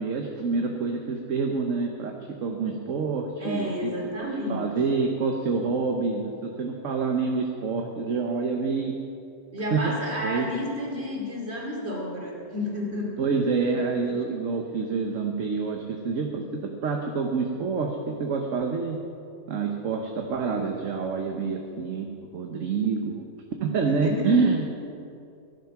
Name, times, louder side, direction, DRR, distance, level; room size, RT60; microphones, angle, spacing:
voice 1, 0.0-9.0 9.7-9.9 10.2-10.5 13.2-19.0 19.5-23.2 23.6-24.7, right 4 dB, 55° right, 3 dB, 1.3 m, -27 dB
voice 2, 3.4-4.7 9.5-13.2 13.7-13.8 14.0-14.2 23.7-24.4, left 1 dB, 40° right, -2 dB, 3.1 m, -31 dB
17.0 x 11.5 x 5.9 m, 2.6 s
omnidirectional pair, 1.6 m